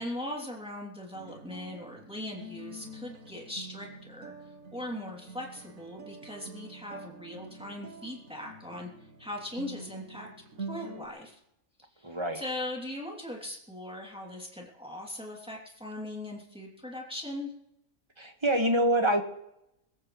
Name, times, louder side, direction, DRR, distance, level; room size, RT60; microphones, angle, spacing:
voice 1, 0.0-4.3 4.7-8.9 9.2-10.3 10.6-11.4 12.0-17.5, left 1 dB, 5° right, -1 dB, 3.0 m, -39 dB
sound 1, 1.1-11.1, right 3 dB, 65° right, 1.7 m, -46 dB
voice 2, 12.0-12.4 18.2-19.2, right 1 dB, 20° right, 4 dB, 1.7 m, -26 dB
24.5 x 15.0 x 3.3 m, 0.81 s
omnidirectional pair, 1.5 m